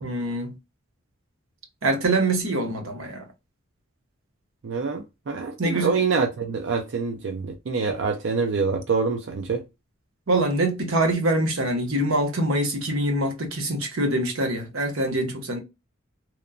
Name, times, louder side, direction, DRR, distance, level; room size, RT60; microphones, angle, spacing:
voice 1, 0.0-0.5 1.8-3.3 5.6-6.0 10.3-15.6, right 1 dB, 85° right, 0.8 m, -24 dB
voice 2, 4.6-9.6, right 4 dB, 60° right, 0.4 m, -26 dB
2.9 x 2.1 x 2.4 m
head